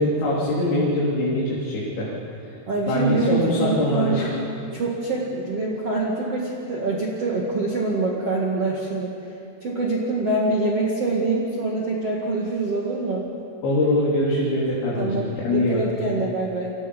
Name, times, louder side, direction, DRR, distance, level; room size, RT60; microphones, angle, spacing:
voice 1, 0.0-2.1 2.9-4.3 13.6-15.8, left 1 dB, 60° left, -6 dB, 4.8 m, -23 dB
voice 2, 2.7-4.3 4.7-9.1 9.6-13.3 15.0-16.7, right 2 dB, 45° right, -3 dB, 2.3 m, -25 dB
28.5 x 24.5 x 5.4 m, 2.7 s
omnidirectional pair, 5.4 m